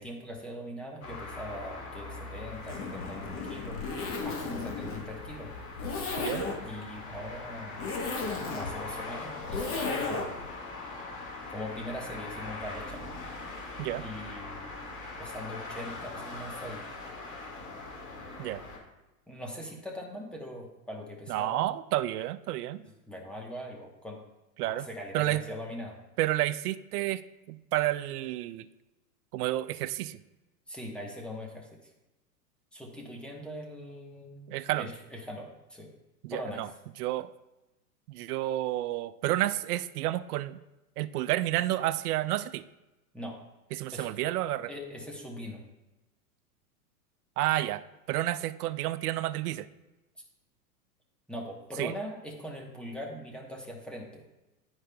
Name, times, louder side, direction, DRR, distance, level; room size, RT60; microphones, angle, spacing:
voice 1, 0.0-3.8 4.2-5.5 6.4-7.8 8.2-10.3 11.5-13.0 14.0-16.8 19.3-21.7 23.1-24.2 24.6-26.0 30.7-31.8 32.7-35.9 36.3-36.6 43.1-43.3 43.9-44.3 44.7-45.6 51.3-54.2, equal, ahead, -1 dB, 0.9 m, -41 dB
sound 1, 1.0-18.8, left 3 dB, 60° left, 2.0 m, -42 dB
Zipper (clothing), 2.5-10.5, left 4 dB, 25° left, 1.0 m, -35 dB
voice 2, 21.3-22.8 24.6-24.9 25.1-25.4 26.2-27.2 27.5-28.7 29.3-30.2 34.5-34.9 36.2-36.7 37.0-37.3 38.1-40.6 41.0-42.6 43.7-44.7 47.4-49.7 51.8-51.9, right 15 dB, 70° right, 13 dB, 0.5 m, -30 dB
11.0 x 4.8 x 2.3 m, 1.0 s
hypercardioid pair, 125°, 47 cm